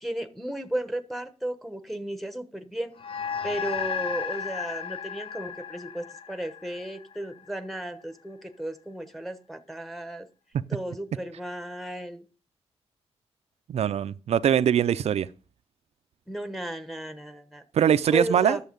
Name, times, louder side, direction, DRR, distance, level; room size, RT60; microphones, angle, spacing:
voice 1, 0.0-2.9 3.4-10.3 10.7-12.2 16.3-17.6 18.1-18.6, right 1 dB, ahead, 1.1 m, -34 dB
sound 1, 3.0-7.7, left 7 dB, 60° left, 0.5 m, -34 dB
voice 2, 13.7-15.3 17.7-18.6, right 9 dB, 80° right, 0.5 m, -22 dB
11.5 x 7.1 x 5.3 m
wide cardioid pair, 150°, 11 cm